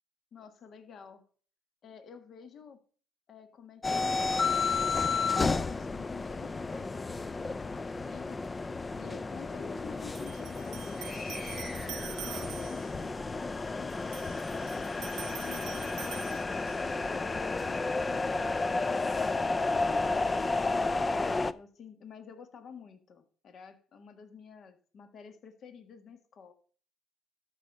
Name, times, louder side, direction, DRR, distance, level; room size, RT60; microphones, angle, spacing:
voice 1, 0.3-1.2 1.8-2.8 3.3-8.4 9.0-14.2 15.1-16.4 16.9-20.3 21.5-26.5, left 6 dB, 55° left, 8 dB, 1.6 m, -50 dB
sound 1, 3.8-21.5, left 3 dB, 25° left, 0.5 m, -32 dB
sound 2, 10.1-13.0 13.9-17.0, right 15 dB, 75° right, 0.4 m, -45 dB
12.5 x 5.2 x 5.4 m, 0.43 s
supercardioid pair, 85°, 0 cm